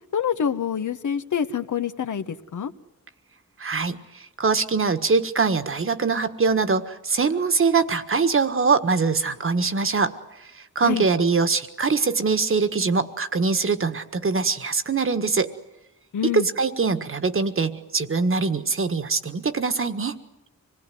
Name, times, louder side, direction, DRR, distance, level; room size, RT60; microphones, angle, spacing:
voice 1, 0.1-2.7 10.8-11.0 16.1-16.5, left 8 dB, 70° left, 10 dB, 1.3 m, -26 dB
voice 2, 3.6-10.1 10.4-15.5 16.3-20.2, right 4 dB, 40° right, 10 dB, 1.6 m, -23 dB
25.5 x 19.5 x 9.4 m, 0.93 s
wide cardioid pair, 100°, 31 cm